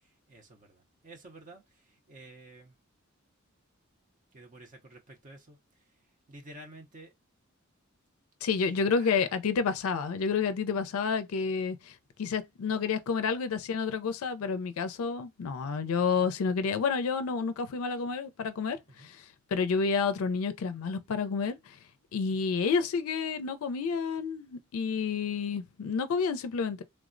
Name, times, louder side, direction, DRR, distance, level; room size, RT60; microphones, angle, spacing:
voice 1, 0.0-2.7 4.3-5.6 6.3-7.1 8.5-9.3 18.9-19.1, right 1 dB, 40° right, 0.5 m, -51 dB
voice 2, 8.4-19.3 19.5-21.8 22.1-26.8, left 5 dB, 85° left, 0.4 m, -30 dB
3.2 x 2.0 x 2.4 m
head